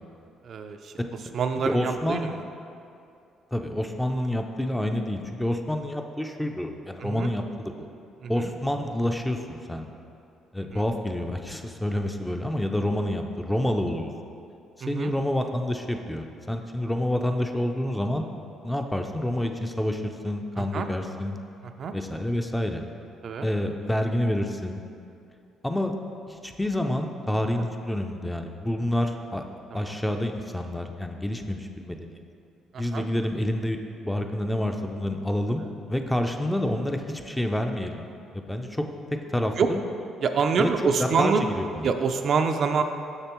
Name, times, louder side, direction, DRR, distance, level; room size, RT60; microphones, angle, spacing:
voice 1, 0.4-0.9 1.3-2.4 7.0-7.3 8.2-8.5 10.7-10.8 14.8-15.1 20.6-20.9 21.6-21.9 23.2-23.5 27.6-27.7 29.7-30.0 32.7-33.0 39.6-39.7 40.2-41.4 41.8-42.8, right 5 dB, 55° right, 6 dB, 0.3 m, -26 dB
voice 2, 1.7-2.3 3.5-7.9 8.3-9.9 10.5-14.1 14.9-18.3 18.6-21.4 21.9-22.8 23.4-24.8 25.6-25.9 26.3-29.4 29.7-32.2 32.8-33.8 34.0-35.6 35.9-38.1 38.3-38.8 39.3-39.8 40.6-41.9, left 1 dB, 5° left, 4 dB, 0.4 m, -28 dB
6.7 x 6.3 x 3.0 m, 2.5 s
cardioid pair, 100°, 0 cm